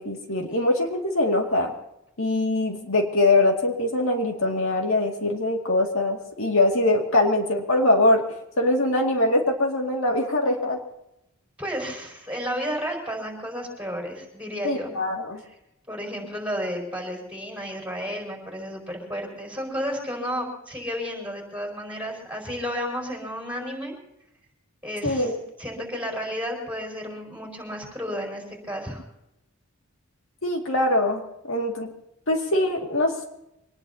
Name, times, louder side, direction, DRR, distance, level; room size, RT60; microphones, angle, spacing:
voice 1, 0.0-1.7 2.2-8.2 8.6-10.8 14.6-15.4 25.0-25.4 30.4-31.2 31.5-31.9 32.3-33.3, left 2 dB, 65° left, 1 dB, 2.3 m, -22 dB
voice 2, 11.6-14.9 15.9-24.0 24.8-25.3 25.6-29.0, equal, 5° right, 1 dB, 5.1 m, -32 dB
25.0 x 20.0 x 2.8 m, 0.85 s
head